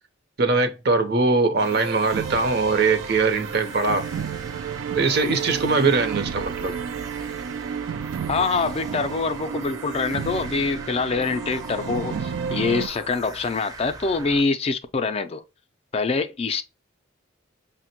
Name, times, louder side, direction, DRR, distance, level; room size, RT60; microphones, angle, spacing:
voice 1, 0.4-4.1 4.9-6.7, right 3 dB, 55° right, 0.7 m, -21 dB
sound 1, 1.6-14.4, right 2 dB, 20° right, 0.5 m, -41 dB
sound 2, 1.6-12.9, right 7 dB, 75° right, 0.3 m, -32 dB
voice 2, 8.3-15.4 15.9-16.6, left 4 dB, 30° left, 0.4 m, -25 dB
5.7 x 2.1 x 2.8 m
head